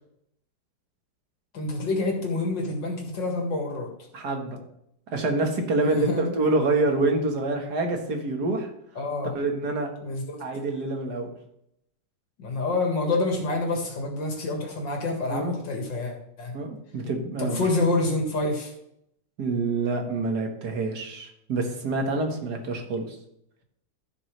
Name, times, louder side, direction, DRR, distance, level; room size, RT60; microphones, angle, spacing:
voice 1, 1.5-3.9 5.8-6.3 9.0-9.3 10.0-10.4 12.4-16.5 17.4-18.7, left 2 dB, 80° left, 1 dB, 2.7 m, -27 dB
voice 2, 4.1-4.6 5.1-8.7 9.4-9.9 10.4-11.3 15.3-15.6 16.5-17.6 19.4-23.2, right 2 dB, 60° right, 3 dB, 2.0 m, -26 dB
15.0 x 6.2 x 3.3 m, 0.77 s
omnidirectional pair, 1.9 m